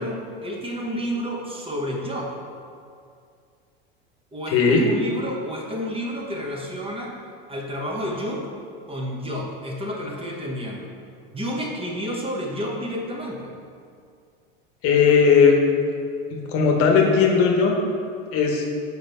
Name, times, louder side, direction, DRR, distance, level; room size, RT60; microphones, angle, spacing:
voice 1, 0.0-2.3 4.3-7.1 7.5-8.4 8.9-10.9 11.3-13.5, equal, 20° right, -1 dB, 1.2 m, -30 dB
voice 2, 4.5-4.9 14.8-15.6 16.3-17.8 18.3-18.7, left 5 dB, 50° left, 1 dB, 1.0 m, -17 dB
5.1 x 4.6 x 5.4 m, 2.3 s
hypercardioid pair, 90°, 30 cm